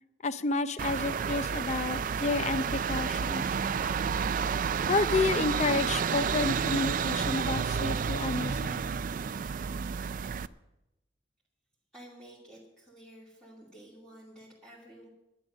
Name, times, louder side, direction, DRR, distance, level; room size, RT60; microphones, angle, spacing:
voice 1, 0.2-3.4 4.9-8.8, left 3 dB, 40° left, 13 dB, 0.6 m, -30 dB
sound 1, 0.8-10.5, right 6 dB, 45° right, 0.4 m, -30 dB
voice 2, 11.9-15.1, right 1 dB, 5° left, -8 dB, 2.7 m, -51 dB
11.5 x 10.0 x 6.4 m, 0.91 s
head